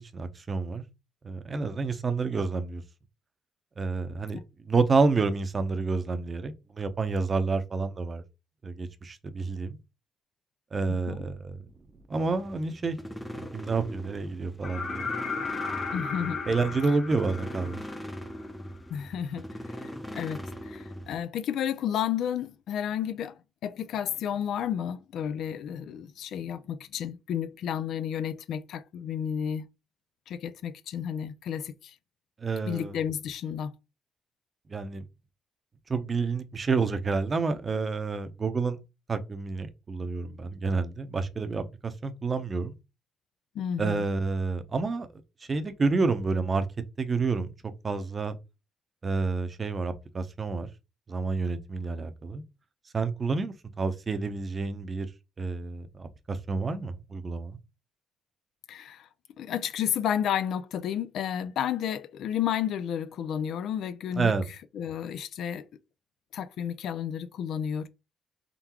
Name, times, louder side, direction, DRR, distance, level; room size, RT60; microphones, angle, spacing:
voice 1, 0.1-0.8 1.2-2.8 3.8-8.2 8.6-9.8 10.7-11.6 12.1-13.0 13.3-15.1 16.5-17.8 32.4-33.0 34.7-35.0 35.9-38.8 39.1-42.8 43.8-45.1 45.5-46.6 47.0-47.5 47.8-48.4 49.0-50.7 51.1-52.4 52.9-55.1 55.4-57.6 64.2-64.5, right 4 dB, 35° right, 0.7 m, -29 dB
sound 1, 12.1-21.2, equal, 5° left, 0.7 m, -41 dB
sound 2, 14.6-18.4 20.3-20.4, left 4 dB, 45° left, 1.3 m, -35 dB
voice 2, 15.9-16.4 18.9-19.4 20.1-29.7 30.3-31.9 32.7-33.7 43.6-44.0 58.7-59.1 59.4-64.3 64.7-65.7 66.3-67.9, left 9 dB, 75° left, 0.4 m, -32 dB
3.8 x 3.5 x 2.9 m
cardioid pair, 90°, 0 cm